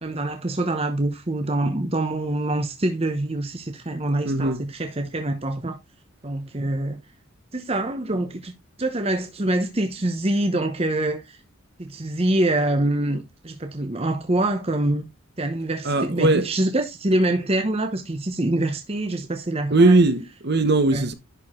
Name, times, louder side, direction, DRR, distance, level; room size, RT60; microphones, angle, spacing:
voice 1, 0.0-5.8 6.2-7.0 7.5-8.5 8.8-11.4 11.8-15.1 15.4-20.0 20.9-21.1, right 1 dB, 30° right, 0.9 m, -25 dB
voice 2, 4.2-4.6 15.8-16.5 19.7-21.1, right 2 dB, 50° right, 1.2 m, -19 dB
11.0 x 4.7 x 3.6 m
head